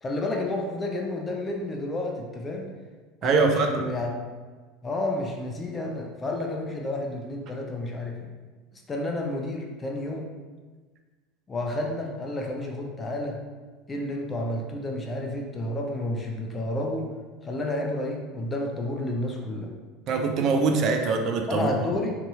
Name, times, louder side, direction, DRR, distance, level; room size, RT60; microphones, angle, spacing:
voice 1, 0.0-2.7 3.2-4.1 4.8-8.3 8.7-10.3 11.5-13.4 13.9-17.1 17.4-19.7 21.5-22.2, left 1 dB, 25° left, 0 dB, 0.5 m, -30 dB
voice 2, 3.2-3.8 20.1-21.7, right 4 dB, 50° right, 4 dB, 0.3 m, -23 dB
2.7 x 2.7 x 2.4 m, 1.3 s
hypercardioid pair, 85°, 0 cm